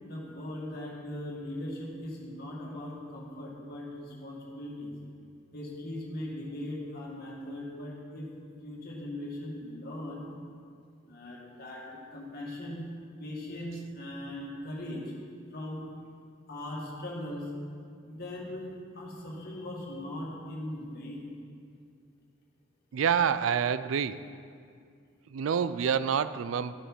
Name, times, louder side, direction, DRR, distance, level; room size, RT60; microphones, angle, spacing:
voice 1, 0.0-4.9 5.5-10.3 11.1-12.8 13.2-15.1 15.5-15.8 16.5-17.5 18.0-18.7 18.9-21.2, left 1 dB, 50° left, -3 dB, 2.0 m, -39 dB
voice 2, 22.9-24.2 25.3-26.7, right 7 dB, 80° right, 14 dB, 0.4 m, -27 dB
13.5 x 6.3 x 4.7 m, 2.2 s
head